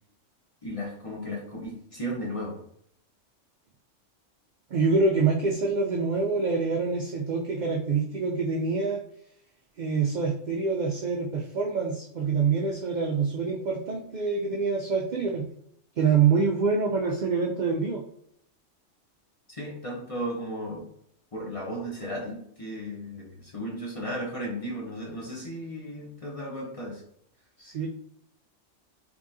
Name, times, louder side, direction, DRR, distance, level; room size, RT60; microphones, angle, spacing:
voice 1, 0.6-2.6 19.5-20.8 21.3-27.0, equal, 35° left, -2 dB, 0.6 m, -35 dB
voice 2, 4.7-9.0 9.8-15.5 16.0-18.0 27.6-27.9, right 4 dB, 70° right, 0 dB, 0.4 m, -26 dB
3.6 x 3.0 x 2.6 m, 0.71 s
omnidirectional pair, 1.3 m